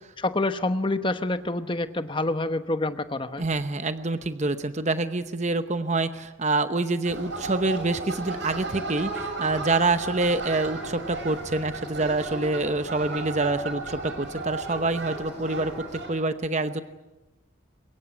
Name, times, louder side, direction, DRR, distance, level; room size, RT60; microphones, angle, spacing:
voice 1, 0.2-3.4, left 2 dB, 25° left, 10 dB, 1.0 m, -27 dB
voice 2, 3.4-16.8, right 3 dB, 35° right, 10 dB, 0.8 m, -26 dB
sound 1, 7.0-16.1, right 2 dB, 60° right, 6.5 m, -34 dB
23.5 x 21.5 x 8.4 m, 1.1 s
head